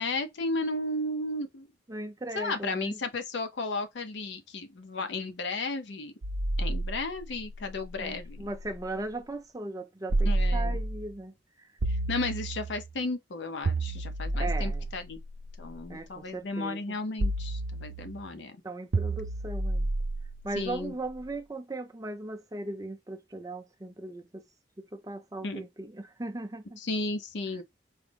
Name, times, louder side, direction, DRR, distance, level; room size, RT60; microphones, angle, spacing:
voice 1, 0.0-1.7 2.3-6.1 6.6-8.5 10.3-10.8 11.9-15.2 15.6-18.6 20.6-20.9 25.4-25.6 26.8-27.6, left 2 dB, 70° left, 0.6 m, -34 dB
voice 2, 1.9-3.0 8.0-11.7 14.4-14.9 15.9-17.0 18.6-19.9 20.4-24.4 24.8-26.8 27.5-27.6, right 2 dB, 20° right, 0.5 m, -38 dB
sound 1, 6.2-9.0 10.1-11.1 11.8-12.9 13.6-15.9 17.2-18.3 18.9-21.1, right 2 dB, 80° right, 0.6 m, -31 dB
4.7 x 2.0 x 3.3 m
head